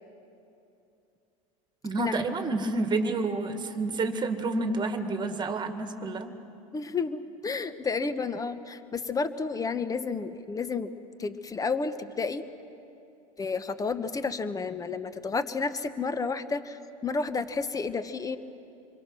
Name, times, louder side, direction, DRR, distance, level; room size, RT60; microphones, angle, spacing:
voice 1, 1.8-6.3, right 3 dB, 25° right, 7 dB, 2.0 m, -29 dB
voice 2, 6.7-10.9 11.2-12.4 13.4-18.4, left 4 dB, 20° left, 12 dB, 1.1 m, -31 dB
27.0 x 22.5 x 6.3 m, 2.8 s
hypercardioid pair, 95°, 18 cm